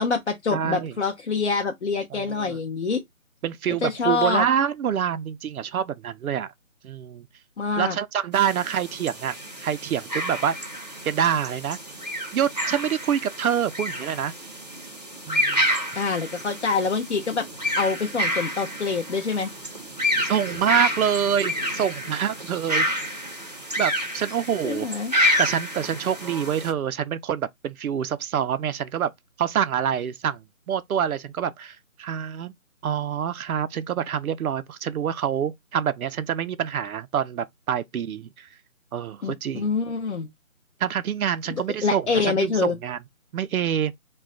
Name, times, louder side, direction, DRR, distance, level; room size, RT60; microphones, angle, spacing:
voice 1, 0.0-3.0 3.8-4.5 7.6-8.0 16.0-17.5 17.8-19.5 24.6-25.1 39.2-40.3 41.8-42.7, left 4 dB, 55° left, 0.6 m, -25 dB
voice 2, 0.5-0.9 2.1-2.6 3.4-6.5 6.8-7.3 7.8-9.4 9.6-10.5 11.0-11.8 12.3-14.3 15.3-15.6 20.2-22.9 23.8-24.9 25.4-29.1 29.4-30.4 30.7-32.5 32.8-38.5 38.9-39.7 40.8-43.0 43.3-43.9, right 9 dB, 85° right, 0.5 m, -26 dB
sound 1, 8.3-26.7, equal, 30° right, 0.5 m, -29 dB
2.3 x 2.1 x 3.6 m
figure-of-eight pair, 170°, 42 cm